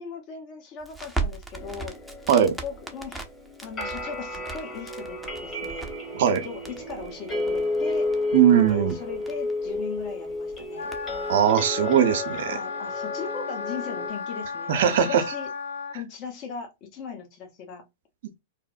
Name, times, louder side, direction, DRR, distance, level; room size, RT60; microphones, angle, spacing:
voice 1, 0.0-2.0 2.6-3.2 3.6-5.9 6.4-8.1 8.7-10.9 12.5-15.5 15.9-17.8, left 6 dB, 45° left, 0.9 m, -38 dB
Crackle, 0.8-11.3, right 3 dB, ahead, 0.6 m, -39 dB
sound 1, 1.6-14.1, left 2 dB, 25° left, 1.4 m, -32 dB
voice 2, 8.3-8.9 11.3-12.6 14.7-15.2, right 9 dB, 65° right, 0.5 m, -20 dB
Wind instrument woodwind instrument, 10.7-16.0, left 4 dB, 90° left, 0.5 m, -34 dB
2.9 x 2.0 x 2.4 m
hypercardioid pair, 105°, 0 cm